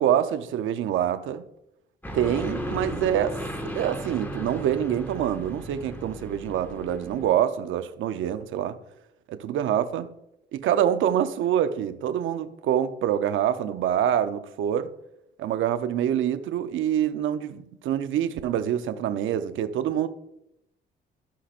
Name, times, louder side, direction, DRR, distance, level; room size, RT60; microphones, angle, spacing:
voice 1, 0.0-1.4 2.1-8.8 9.3-10.1 10.5-14.9 15.4-20.1, right 10 dB, 80° right, 0.7 m, -26 dB
sound 1, 2.0-7.3, equal, 10° left, 1.7 m, -35 dB
16.0 x 5.7 x 2.5 m
cardioid pair, 90°, 20 cm